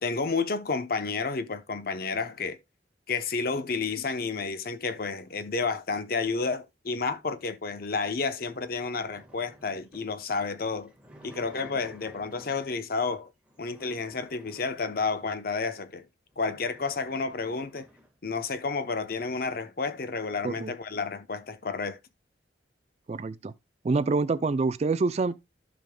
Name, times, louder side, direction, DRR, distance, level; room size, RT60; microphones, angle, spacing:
voice 1, 0.0-2.6 3.1-10.9 11.2-13.3 13.6-16.1 16.4-17.9 18.2-22.0, left 4 dB, 50° left, 0.7 m, -31 dB
sound 1, 7.7-12.9 13.5-15.5 16.0-16.1 16.3-18.2, equal, 5° right, 1.5 m, -53 dB
voice 2, 23.1-23.5 23.8-25.5, right 3 dB, 35° right, 0.3 m, -26 dB
14.5 x 5.2 x 2.2 m
head